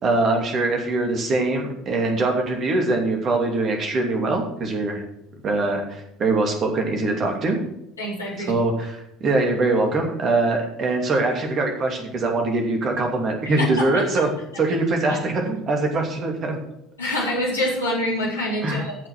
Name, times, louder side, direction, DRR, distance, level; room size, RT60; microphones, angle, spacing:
voice 1, 0.0-5.0 5.4-7.6 8.5-14.3 14.6-16.6 18.6-18.8, right 2 dB, 35° right, 3 dB, 2.7 m, -23 dB
voice 2, 8.0-8.5 13.4-14.1 14.5-14.6 15.1-15.2 17.0-19.1, left 1 dB, 80° left, -6 dB, 4.4 m, -26 dB
15.0 x 6.1 x 6.3 m, 0.80 s
figure-of-eight pair, 65°, 0 cm